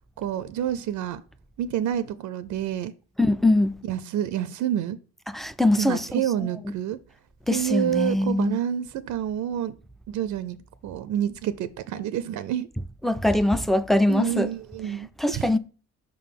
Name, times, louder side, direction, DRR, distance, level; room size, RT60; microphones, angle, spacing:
voice 1, 0.2-1.2 1.6-2.9 3.8-5.0 5.8-7.0 7.5-9.7 10.1-10.6 10.8-12.7 14.1-15.6, right 10 dB, 75° right, 0.5 m, -28 dB
voice 2, 3.2-3.8 5.3-6.2 7.5-8.6 13.0-14.5 15.2-15.6, left 1 dB, ahead, 0.4 m, -22 dB
5.4 x 3.7 x 5.8 m
cardioid pair, 90°, 30 cm